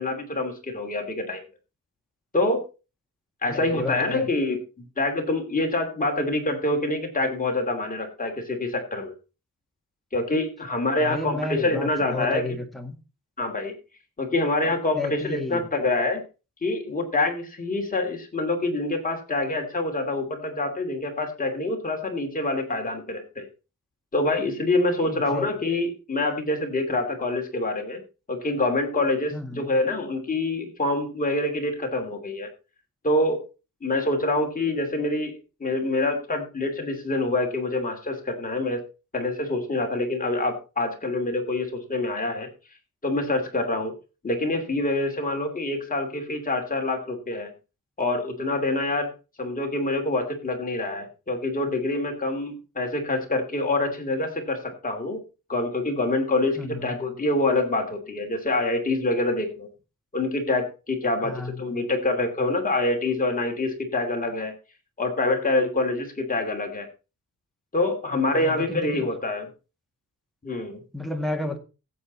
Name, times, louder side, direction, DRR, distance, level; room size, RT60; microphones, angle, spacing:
voice 1, 0.0-1.5 2.3-2.6 3.4-9.1 10.1-12.4 13.4-13.7 14.2-16.2 16.6-23.5 24.1-28.0 28.3-32.5 33.0-33.4 33.8-35.3 35.6-38.8 39.1-42.5 43.0-43.9 44.2-47.5 48.0-49.1 49.4-55.2 55.5-59.7 60.1-64.5 65.0-66.9 67.7-69.5 70.4-70.8, left 2 dB, 25° left, 2 dB, 2.8 m, -26 dB
voice 2, 3.5-4.3 11.0-13.0 14.6-15.6 25.0-25.5 29.3-29.7 56.6-57.1 61.2-61.7 68.3-69.1 70.9-71.6, left 2 dB, ahead, 3 dB, 1.7 m, -32 dB
15.5 x 7.8 x 4.1 m, 0.32 s
wide cardioid pair, 155°, 32 cm